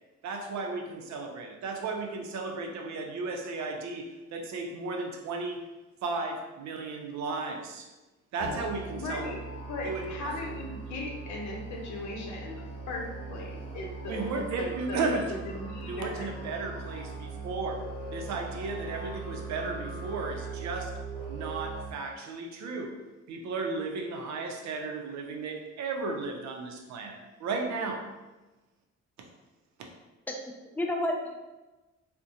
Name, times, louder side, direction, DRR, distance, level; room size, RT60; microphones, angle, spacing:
voice 1, 0.2-5.6 6.0-7.9 8.3-9.3 9.8-10.1 14.1-15.4 15.9-17.8 18.1-20.9 21.3-22.9 23.3-28.0, right 3 dB, 70° right, 3 dB, 0.5 m, -34 dB
Musical instrument, 8.4-21.9, right 3 dB, 35° right, 1.1 m, -40 dB
voice 2, 9.0-9.4 9.7-15.1 15.5-16.3, left 2 dB, 75° left, -1 dB, 0.7 m, -38 dB
voice 3, 30.3-31.3, left 1 dB, 5° left, 1 dB, 0.3 m, -31 dB
2.4 x 2.1 x 2.7 m, 1.1 s
cardioid pair, 95°, 29 cm